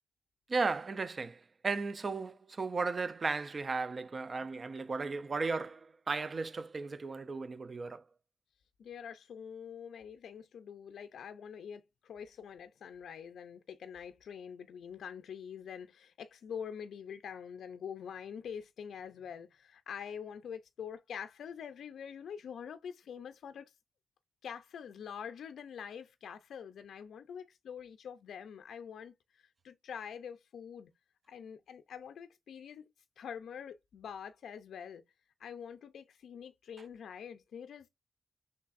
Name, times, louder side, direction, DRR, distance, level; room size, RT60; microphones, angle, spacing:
voice 1, 0.5-8.0, right 4 dB, 40° right, 0.5 m, -35 dB
voice 2, 8.8-23.7 24.4-30.9 31.3-32.9 33.2-35.0 35.4-37.9, left 7 dB, 90° left, 0.4 m, -45 dB
5.7 x 3.2 x 2.4 m
wide cardioid pair, 105°, 0 cm